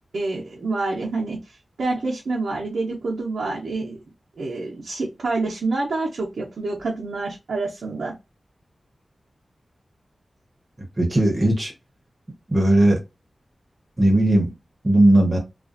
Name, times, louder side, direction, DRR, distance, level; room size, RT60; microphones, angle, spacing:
voice 1, 0.1-1.4 1.8-4.0 4.4-8.1, right 3 dB, 85° right, 0.6 m, -27 dB
voice 2, 11.0-11.7 12.5-13.0 14.0-14.5 14.8-15.4, right 1 dB, 30° right, 0.9 m, -17 dB
2.4 x 2.4 x 2.4 m
wide cardioid pair, 70°, 0 cm